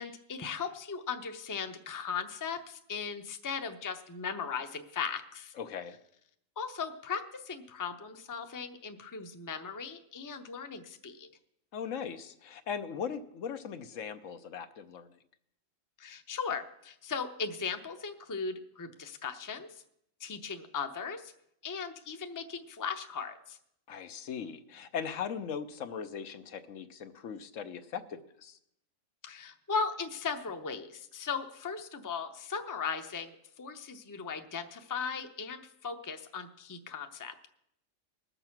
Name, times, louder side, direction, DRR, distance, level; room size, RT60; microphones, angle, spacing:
voice 1, 0.0-5.5 6.6-11.3 16.0-19.7 20.2-21.3 21.6-23.6 29.2-37.5, left 5 dB, 20° left, 6 dB, 0.6 m, -37 dB
voice 2, 5.6-6.0 11.7-15.1 23.9-28.6, left 7 dB, 75° left, 9 dB, 1.1 m, -39 dB
19.5 x 6.8 x 5.9 m, 0.76 s
omnidirectional pair, 1.3 m